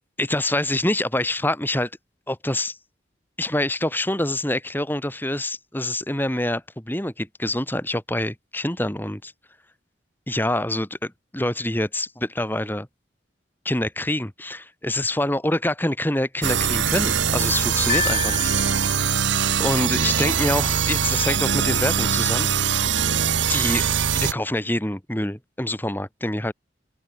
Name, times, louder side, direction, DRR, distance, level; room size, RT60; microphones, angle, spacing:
voice 1, 0.2-1.9 2.3-2.8 3.4-9.3 10.3-12.9 13.6-18.5 19.6-22.5 23.5-23.9 24.1-26.5, left 1 dB, 10° left, 2.8 m, -26 dB
sound 1, 16.4-24.3, right 7 dB, 80° right, 1.1 m, -22 dB
Piano, 17.9-19.2, left 7 dB, 35° left, 4.2 m, -28 dB
open air
head